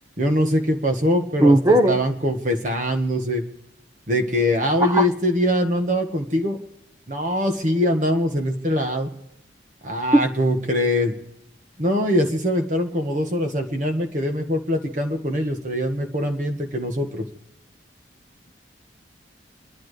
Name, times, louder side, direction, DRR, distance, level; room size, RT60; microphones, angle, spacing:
voice 1, 0.2-3.4 4.1-6.6 7.1-9.1 9.8-11.1 11.8-17.2, equal, 40° right, 4 dB, 1.6 m, -23 dB
voice 2, 1.4-2.0 4.8-5.1 10.1-10.2, right 1 dB, 20° right, 8 dB, 0.9 m, -16 dB
30.0 x 11.5 x 3.3 m, 0.91 s
head